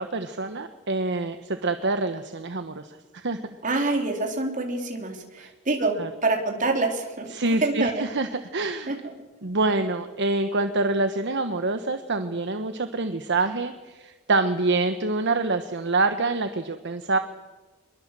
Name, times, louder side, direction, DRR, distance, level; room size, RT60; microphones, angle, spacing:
voice 1, 0.0-3.6 5.4-5.5 6.0-6.1 7.3-8.9 9.4-17.2, right 3 dB, 55° right, 8 dB, 1.2 m, -26 dB
voice 2, 3.6-6.0 6.2-8.0 8.9-9.0, right 3 dB, 40° right, 2 dB, 3.9 m, -26 dB
25.0 x 22.0 x 7.6 m, 1.3 s
head